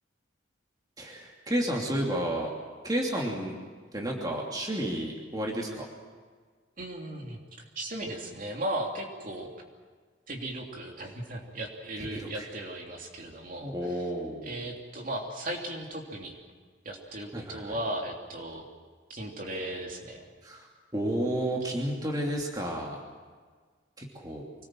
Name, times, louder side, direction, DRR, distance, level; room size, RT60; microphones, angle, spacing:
voice 1, 1.0-2.5 2.8-3.5 3.9-5.9 12.0-12.5 13.6-14.6 17.3-17.8 20.4-20.7 20.9-23.0 24.0-24.4, right 1 dB, 20° right, -1 dB, 2.9 m, -31 dB
voice 2, 6.8-7.4 7.7-9.5 10.3-13.7 14.4-16.3 16.8-18.6 19.1-20.3, right 1 dB, 45° right, 0 dB, 3.1 m, -36 dB
25.5 x 19.5 x 7.6 m, 1.5 s
head